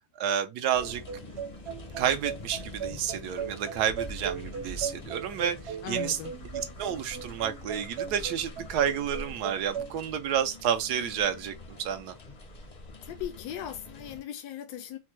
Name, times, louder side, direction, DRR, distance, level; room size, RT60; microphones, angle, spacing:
voice 1, 0.2-1.0 2.0-6.2 6.5-12.1, right 9 dB, 85° right, 1.2 m, -30 dB
sound 1, 0.7-14.2, left 2 dB, 45° left, 0.5 m, -45 dB
sound 2, 0.8-10.0, right 7 dB, 65° right, 0.6 m, -38 dB
voice 2, 5.8-6.3 13.0-15.0, left 11 dB, 80° left, 1.1 m, -38 dB
4.3 x 2.1 x 3.0 m
omnidirectional pair, 1.7 m